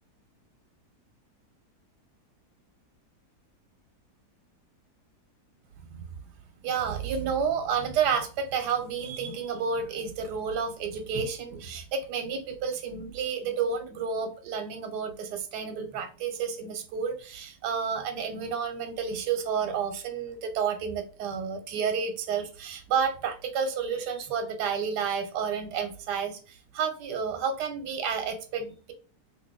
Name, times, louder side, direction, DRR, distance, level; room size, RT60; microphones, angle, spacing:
voice 1, 6.6-28.9, right 6 dB, 90° right, 7 dB, 1.2 m, -30 dB
2.9 x 2.8 x 3.4 m, 0.36 s
omnidirectional pair, 1.7 m